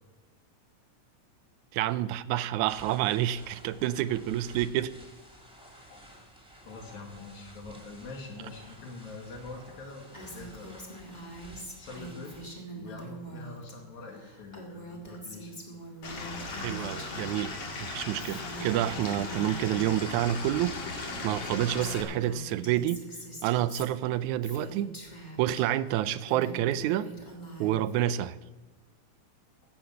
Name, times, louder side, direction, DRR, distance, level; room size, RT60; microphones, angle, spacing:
voice 1, 1.7-4.9 16.5-17.5 17.8-23.0 23.4-24.9 25.4-27.1 27.6-28.4, right 12 dB, 85° right, 16 dB, 2.0 m, -28 dB
sound 1, 2.7-12.5, equal, ahead, 1.9 m, -52 dB
voice 2, 6.6-10.9 11.4-12.4 12.8-15.5, left 3 dB, 80° left, 1 dB, 3.4 m, -45 dB
Female speech woman speaking, 10.1-13.7 14.0-17.3 17.6-20.0 20.6-20.7 20.9-25.6 26.1-28.0, right 2 dB, 20° left, 1.3 m, -44 dB
Stream / Liquid, 16.0-22.0, left 3 dB, 55° left, 2.7 m, -38 dB
15.0 x 5.9 x 7.7 m, 1.2 s
omnidirectional pair, 3.3 m